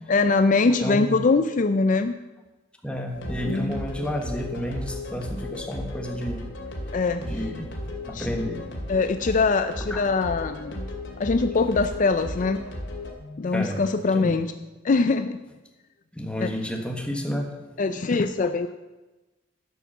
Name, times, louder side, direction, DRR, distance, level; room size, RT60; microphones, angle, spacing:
voice 1, 0.1-2.1 3.4-3.8 6.9-7.2 8.1-8.3 8.9-10.9 11.2-12.6 13.3-14.5 14.8-15.4 16.4-16.5 17.8-18.7, left 3 dB, 45° left, 10 dB, 0.4 m, -22 dB
voice 2, 0.8-1.2 2.8-6.4 7.2-7.7 8.1-8.6 9.9-10.0 13.5-13.8 14.1-14.4 16.1-17.5, equal, 5° left, 2 dB, 1.4 m, -31 dB
sound 1, 3.1-13.1, left 1 dB, 90° left, 2.4 m, -35 dB
11.5 x 6.0 x 7.2 m, 1.1 s
head